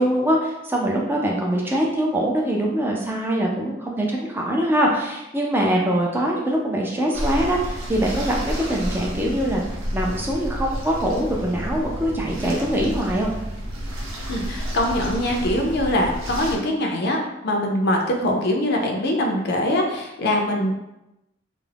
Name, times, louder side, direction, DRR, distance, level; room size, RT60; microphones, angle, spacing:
voice 1, 0.0-9.6 9.9-13.3, right 1 dB, 10° right, -2 dB, 0.3 m, -23 dB
sound 1, 7.1-16.6, equal, 85° right, 0.6 m, -30 dB
voice 2, 14.3-20.7, left 1 dB, 55° left, 1 dB, 0.4 m, -23 dB
2.3 x 2.0 x 3.2 m, 0.91 s
head